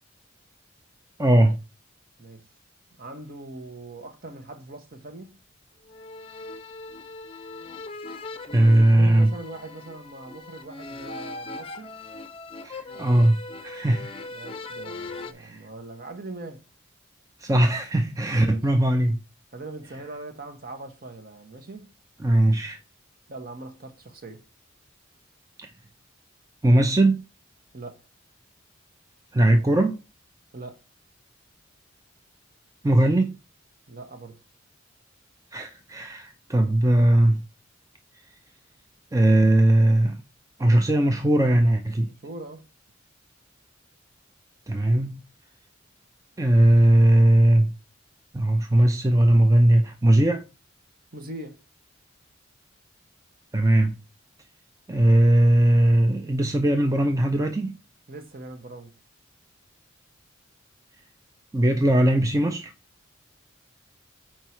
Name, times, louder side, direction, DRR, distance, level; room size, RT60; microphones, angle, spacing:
voice 1, 1.2-1.6 8.5-9.3 12.6-13.4 13.6-14.1 15.4-15.6 17.4-19.2 22.2-22.8 25.6-25.7 26.6-27.2 29.3-30.0 32.8-33.3 35.5-37.4 39.1-40.2 40.6-42.1 44.7-45.2 46.4-47.7 48.3-50.4 53.5-54.0 54.9-57.7 61.5-62.7, right 1 dB, 15° right, 0.4 m, -19 dB
voice 2, 3.0-5.4 8.5-12.0 14.3-16.6 18.4-18.6 19.5-21.9 23.3-24.4 27.7-28.0 30.5-30.8 33.9-34.4 42.1-42.7 51.1-51.6 58.1-58.9, right 2 dB, 45° right, 1.0 m, -41 dB
sound 1, 5.9-15.3, left 3 dB, 25° left, 0.6 m, -40 dB
4.6 x 4.5 x 5.7 m
head